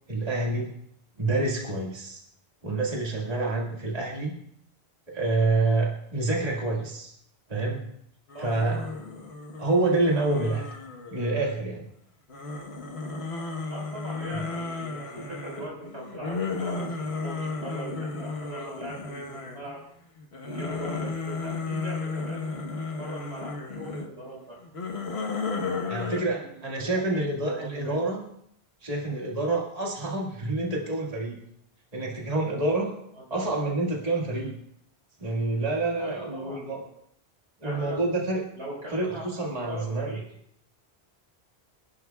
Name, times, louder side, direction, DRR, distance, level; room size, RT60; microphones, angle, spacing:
voice 1, 0.1-0.7 1.2-2.2 2.6-4.4 5.1-7.1 7.5-7.8 8.4-8.8 9.6-10.7 11.1-11.9 14.3-14.4 25.9-28.3 28.8-31.4 31.9-32.9 33.3-34.5 35.2-36.8 37.6-38.4 38.9-40.1, right 2 dB, 35° right, -2 dB, 2.0 m, -27 dB
sound 1, 8.3-11.7 12.3-19.8 20.2-24.1 24.6-26.2, left 4 dB, 70° left, 1.4 m, -34 dB
voice 2, 8.3-8.9 13.7-19.8 20.4-22.4 23.0-24.6 25.5-28.0 33.3-33.4 36.0-36.8 37.6-38.0 38.6-40.2, right 1 dB, 85° right, -3 dB, 5.2 m, -40 dB
26.5 x 11.0 x 2.3 m, 0.72 s
omnidirectional pair, 1.1 m